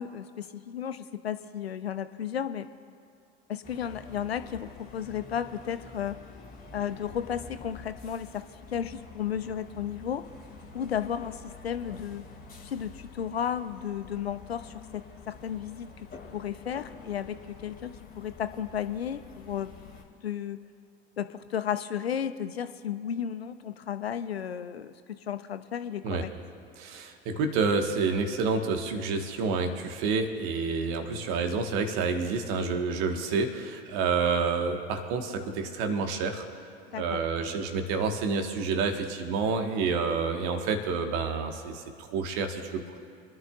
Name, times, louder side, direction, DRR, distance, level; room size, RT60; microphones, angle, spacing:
voice 1, 0.0-2.7 3.5-6.2 6.7-10.2 10.7-12.2 12.6-16.1 16.3-19.7 20.2-20.6 21.2-24.9 25.3-26.3 36.9-37.2, left 9 dB, 85° left, 12 dB, 0.5 m, -34 dB
sound 1, 3.6-20.0, left 4 dB, 30° left, 2.2 m, -48 dB
voice 2, 26.8-36.4 36.9-43.0, right 4 dB, 55° right, 6 dB, 1.4 m, -29 dB
27.5 x 11.0 x 2.4 m, 2.4 s
figure-of-eight pair, 70°, 30 cm